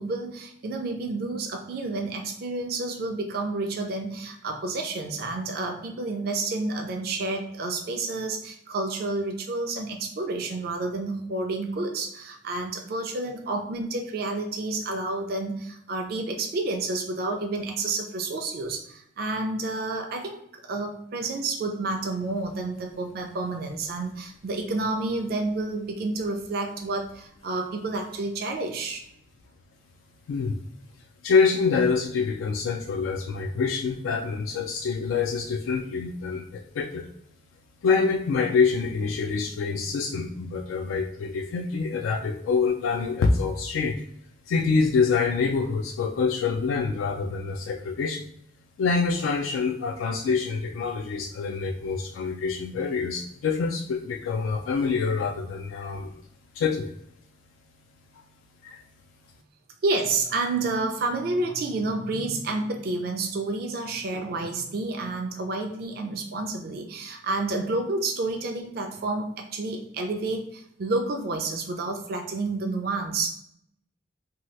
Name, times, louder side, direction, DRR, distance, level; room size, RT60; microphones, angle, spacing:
voice 1, 0.0-20.4 20.7-29.0 59.8-73.3, right 3 dB, 50° right, 3 dB, 0.4 m, -30 dB
voice 2, 31.2-37.1 37.8-44.0 44.5-48.3 48.8-56.2 56.5-57.0 58.6-58.8, left 5 dB, 85° left, 2 dB, 0.3 m, -26 dB
2.8 x 2.3 x 3.1 m, 0.72 s
head